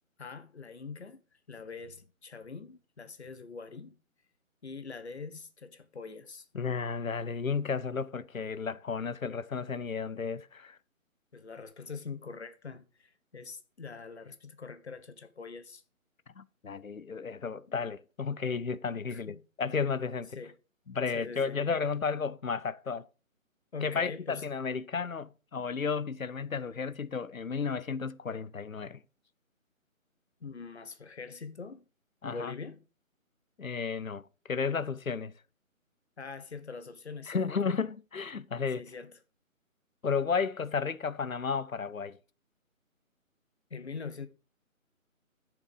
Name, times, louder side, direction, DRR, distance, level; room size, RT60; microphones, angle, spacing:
voice 1, 0.2-1.2 1.5-4.0 4.6-6.5 11.3-15.8 19.1-19.4 20.3-20.6 21.1-21.6 23.7-24.5 30.4-31.8 32.2-32.8 36.2-37.4 38.8-39.2 43.7-44.3, left 4 dB, 50° left, 1.3 m, -43 dB
voice 2, 6.5-10.8 16.4-20.4 20.9-23.1 23.8-29.0 32.2-32.5 33.6-35.3 37.3-38.9 40.0-42.2, left 5 dB, 70° left, 0.8 m, -33 dB
9.8 x 7.2 x 5.0 m
figure-of-eight pair, 150°, 42 cm